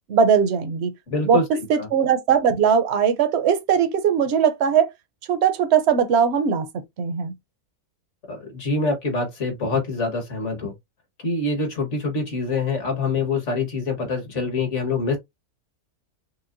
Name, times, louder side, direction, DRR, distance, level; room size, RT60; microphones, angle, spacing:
voice 1, 0.1-0.9 1.3-4.9 5.3-7.3, right 7 dB, 55° right, 0.8 m, -20 dB
voice 2, 1.1-1.4 1.7-1.9 8.3-10.7 11.2-15.2, left 3 dB, 55° left, 1.8 m, -25 dB
5.9 x 2.2 x 2.6 m
omnidirectional pair, 1.6 m